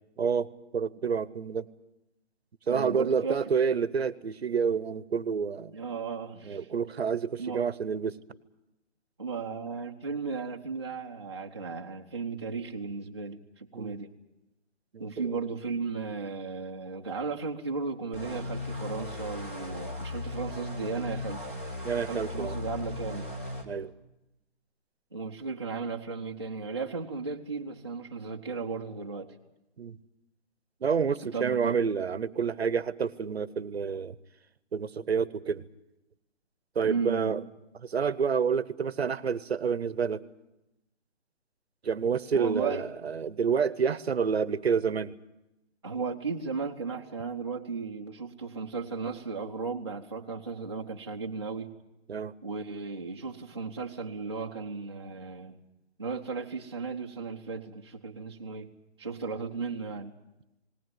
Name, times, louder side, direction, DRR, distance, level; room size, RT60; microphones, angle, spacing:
voice 1, 0.2-1.7 2.7-5.7 6.4-8.2 13.7-13.9 14.9-15.3 21.8-22.6 23.7-23.9 29.8-30.0 30.8-34.1 34.7-35.7 36.7-37.4 37.8-40.2 41.8-45.1 52.1-52.3, right 6 dB, 60° right, 18 dB, 0.9 m, -28 dB
voice 2, 2.7-3.5 5.7-6.7 7.4-7.6 9.2-14.1 15.0-21.4 22.1-23.3 25.1-29.4 31.3-31.8 36.8-37.5 42.3-42.9 45.8-51.7 52.4-55.6 56.0-58.7 59.0-60.1, right 4 dB, 20° right, 0 dB, 0.7 m, -35 dB
sound 1, 18.1-23.6, left 2 dB, 10° left, 0.9 m, -37 dB
19.0 x 18.5 x 9.3 m, 0.92 s
hypercardioid pair, 175°, 36 cm